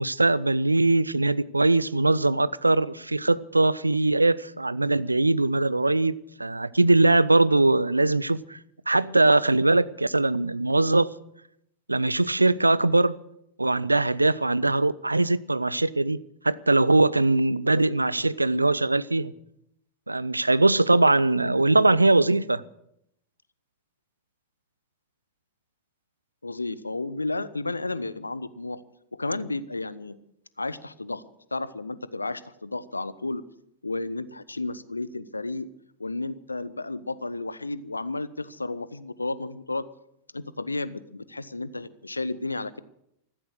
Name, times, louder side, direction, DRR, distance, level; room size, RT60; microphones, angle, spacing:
voice 1, 0.0-8.6 8.9-11.1 11.9-13.2 13.6-16.2 16.4-19.3 20.1-22.6, right 2 dB, 85° right, 0.5 m, -21 dB
voice 2, 26.4-28.8 29.1-30.2 30.6-31.2 31.5-33.4 33.8-35.7 36.0-39.9 40.3-42.7, left 2 dB, 80° left, 0.8 m, -32 dB
15.0 x 14.5 x 6.4 m
figure-of-eight pair, 90°, 0 cm